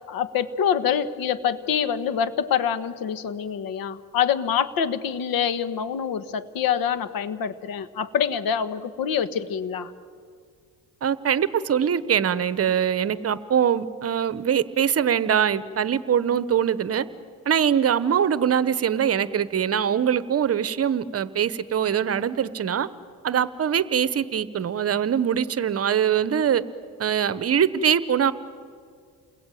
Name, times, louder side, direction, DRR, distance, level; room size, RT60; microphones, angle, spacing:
voice 1, 0.1-9.9, left 8 dB, 75° left, 14 dB, 1.4 m, -25 dB
voice 2, 11.0-17.0 17.5-22.9 23.2-26.6 27.0-28.3, right 8 dB, 40° right, 16 dB, 1.0 m, -23 dB
29.0 x 22.0 x 9.2 m, 2.1 s
cardioid pair, 120°, 36 cm